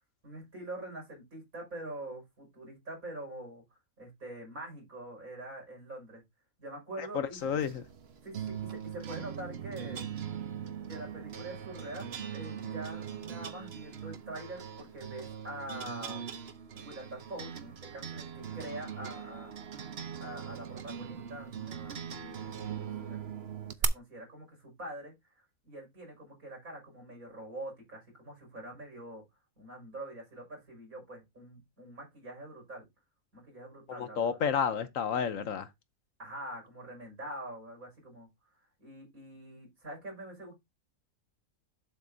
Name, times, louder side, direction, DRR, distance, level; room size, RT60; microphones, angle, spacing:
voice 1, 0.2-3.6 4.0-6.2 6.6-7.4 8.2-10.1 10.9-16.2 16.7-19.5 20.2-23.2 23.6-25.1 25.6-29.2 29.6-32.9 33.3-34.4 36.2-38.3 38.8-40.5, right 1 dB, 75° right, 6.2 m, -44 dB
voice 2, 7.0-7.8 34.0-35.7, left 7 dB, 70° left, 1.2 m, -31 dB
sound 1, 7.4-23.8, right 8 dB, 50° right, 1.0 m, -40 dB
9.1 x 7.8 x 2.7 m
omnidirectional pair, 1.5 m